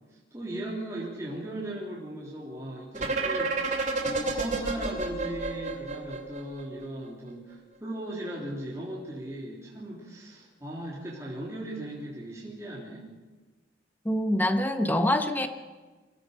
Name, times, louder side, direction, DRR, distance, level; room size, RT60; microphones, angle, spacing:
voice 1, 0.1-13.1, right 1 dB, 15° right, -6 dB, 3.4 m, -38 dB
sound 1, 2.9-6.8, right 3 dB, 45° right, 2.7 m, -30 dB
voice 2, 14.0-15.5, left 1 dB, 10° left, 7 dB, 1.2 m, -25 dB
24.5 x 16.0 x 6.7 m, 1.3 s
head